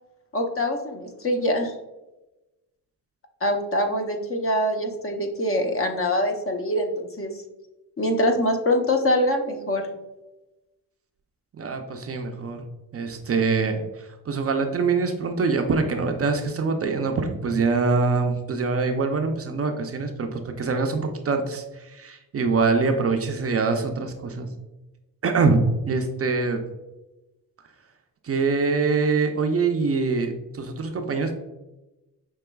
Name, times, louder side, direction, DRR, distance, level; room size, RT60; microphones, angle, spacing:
voice 1, 0.3-1.7 3.4-7.3 8.0-9.9, left 1 dB, 35° left, 4 dB, 0.7 m, -24 dB
voice 2, 11.6-12.7 12.9-24.5 25.2-26.6 28.2-31.3, right 4 dB, 40° right, 5 dB, 0.5 m, -24 dB
5.6 x 3.0 x 2.3 m, 1.0 s
cardioid pair, 75°, 38 cm